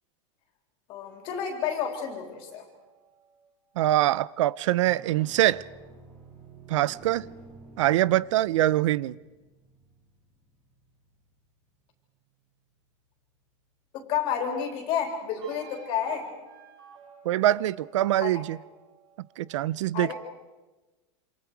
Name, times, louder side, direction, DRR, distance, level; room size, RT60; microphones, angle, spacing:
voice 1, 0.9-2.7 13.9-16.3 18.2-18.4 19.9-20.1, left 8 dB, 35° left, 3.6 m, -30 dB
sound 1, 1.0-3.6 4.7-11.5 15.4-19.6, right 4 dB, 30° right, 7.6 m, -52 dB
voice 2, 3.8-5.6 6.7-7.3 7.8-9.2 17.2-18.6 19.2-20.1, right 14 dB, 80° right, 0.7 m, -24 dB
28.0 x 27.0 x 4.8 m
supercardioid pair, 175°, 16 cm